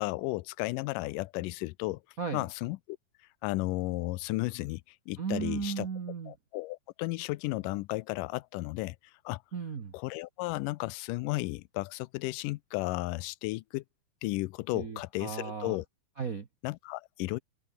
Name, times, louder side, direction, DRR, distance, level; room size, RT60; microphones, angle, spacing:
voice 1, 0.0-2.0 2.3-3.0 3.4-5.9 6.3-9.0 9.3-9.4 9.9-13.8 14.2-15.9 16.6-17.4, left 21 dB, 85° left, 2.2 m, -34 dB
voice 2, 5.2-6.3 9.5-9.9 14.7-15.8 16.2-16.5, right 6 dB, 55° right, 0.9 m, -35 dB
omnidirectional pair, 3.7 m